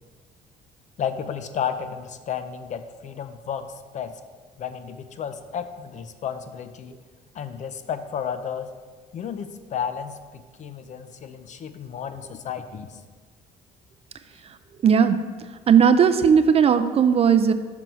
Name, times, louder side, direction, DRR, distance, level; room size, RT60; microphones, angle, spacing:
voice 1, 1.0-4.1 4.6-7.0 7.3-8.7 9.1-12.9, left 7 dB, 45° left, 10 dB, 0.5 m, -32 dB
voice 2, 14.8-15.2 15.7-17.5, right 7 dB, 35° right, 10 dB, 0.4 m, -17 dB
6.1 x 4.4 x 5.4 m, 1.5 s
cardioid pair, 110°, 17 cm